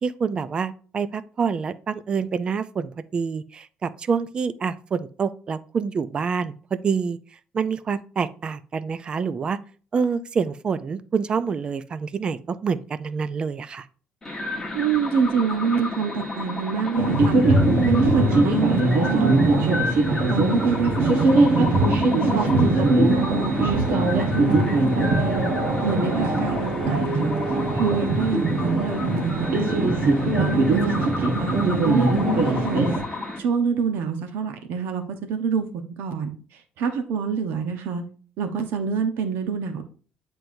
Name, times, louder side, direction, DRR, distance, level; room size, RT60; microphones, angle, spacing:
voice 1, 0.0-7.2 7.5-9.6 9.9-13.9, right 5 dB, 25° right, 0.3 m, -27 dB
sound 1, 14.2-33.4, left 2 dB, 15° left, 1.2 m, -32 dB
voice 2, 14.7-17.4 17.8-19.8 20.2-22.0 22.3-25.5 25.8-32.9 33.4-35.0 35.3-38.0 38.4-39.8, right 6 dB, 90° right, 1.0 m, -27 dB
sound 2, 17.0-33.0, right 2 dB, 75° right, 1.3 m, -21 dB
9.4 x 4.5 x 2.6 m
cardioid pair, 180°, 3 cm